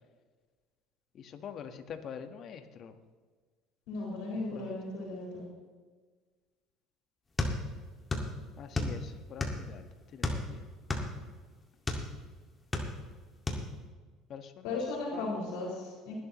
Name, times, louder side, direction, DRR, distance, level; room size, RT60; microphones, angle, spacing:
voice 1, 1.1-2.9 4.5-4.8 8.6-10.6 14.3-14.8 15.1-15.3, left 7 dB, 50° left, 8 dB, 1.3 m, -45 dB
voice 2, 3.9-5.4 14.6-16.1, left 3 dB, 85° left, -4 dB, 4.5 m, -36 dB
sound 1, 7.4-8.3 8.6-9.7 10.2-12.1 12.5-13.2 13.5-13.7, left 2 dB, 20° left, 2.0 m, -32 dB
20.5 x 11.5 x 3.1 m, 1.4 s
supercardioid pair, 110°, 0 cm